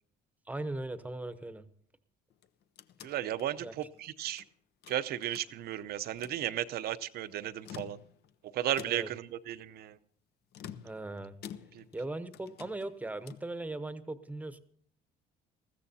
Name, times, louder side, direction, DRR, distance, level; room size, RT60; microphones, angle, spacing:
voice 1, 0.5-1.6 3.6-3.7 8.9-9.1 10.8-11.4 11.9-14.6, right 2 dB, 10° right, 0.9 m, -39 dB
sound 1, 2.3-4.5 4.8-5.8 6.1-6.4 7.5-8.3 8.8-9.3 10.5-12.0 12.3-13.5, left 9 dB, 70° left, 0.7 m, -49 dB
voice 2, 3.0-4.4 4.9-8.0 8.5-10.0 11.7-11.9, right 12 dB, 65° right, 0.7 m, -35 dB
20.0 x 14.5 x 2.8 m
cardioid pair, 110°, 17 cm